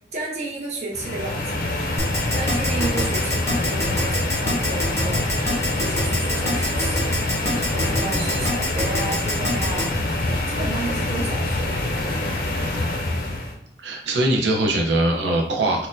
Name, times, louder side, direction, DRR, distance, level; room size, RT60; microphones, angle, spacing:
voice 1, 0.1-1.5 2.3-5.2 5.8-7.1 7.7-9.9 10.3-12.7, right 2 dB, 35° right, -2 dB, 0.6 m, -32 dB
sound 1, 0.9-13.6, left 2 dB, 50° left, 0.4 m, -25 dB
Keyboard (musical), 2.0-9.8, left 1 dB, 15° left, 0.8 m, -25 dB
voice 2, 8.1-8.5 13.8-15.9, right 1 dB, 80° right, 0 dB, 0.6 m, -22 dB
4.1 x 2.1 x 2.5 m, 0.68 s
head